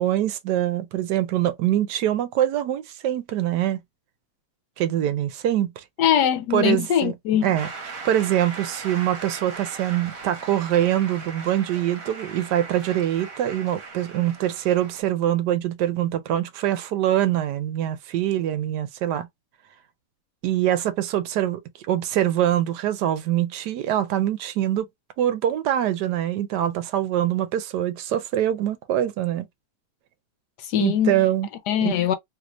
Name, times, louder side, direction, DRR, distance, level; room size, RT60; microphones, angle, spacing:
voice 1, 0.0-3.8 4.8-5.8 6.5-7.1 7.4-7.7 8.0-19.3 20.4-21.6 21.9-24.9 25.2-29.5 30.8-31.5 31.8-31.9, right 12 dB, 85° right, 1.2 m, -24 dB
voice 2, 6.0-7.5 30.6-31.3 31.7-32.1, left 10 dB, 75° left, 1.2 m, -22 dB
Shout / Cheering / Applause, 7.6-15.0, right 4 dB, 60° right, 1.3 m, -39 dB
3.1 x 2.5 x 3.0 m
omnidirectional pair, 1.8 m